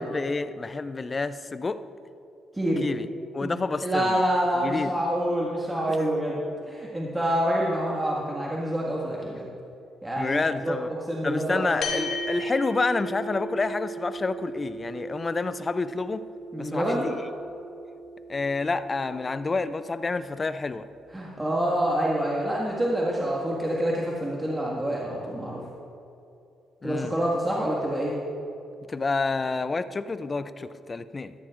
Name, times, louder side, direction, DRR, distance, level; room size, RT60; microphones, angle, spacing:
voice 1, 0.0-1.8 2.8-3.1 3.3-4.2 4.5-4.9 5.8-6.1 10.2-10.9 11.2-16.3 16.6-17.2 18.3-20.9 26.8-27.2 28.9-31.3, left 3 dB, 35° left, 13 dB, 0.5 m, -29 dB
voice 2, 2.5-2.8 3.4-3.5 3.8-6.4 6.7-9.4 10.0-10.8 11.1-11.6 16.5-17.0 21.1-25.6 26.8-28.1, right 1 dB, 15° right, -4 dB, 1.7 m, -27 dB
sound 1, 11.8-20.5, right 1 dB, 70° left, 1.9 m, -37 dB
14.5 x 13.5 x 2.5 m, 2.7 s
supercardioid pair, 65°, 0 cm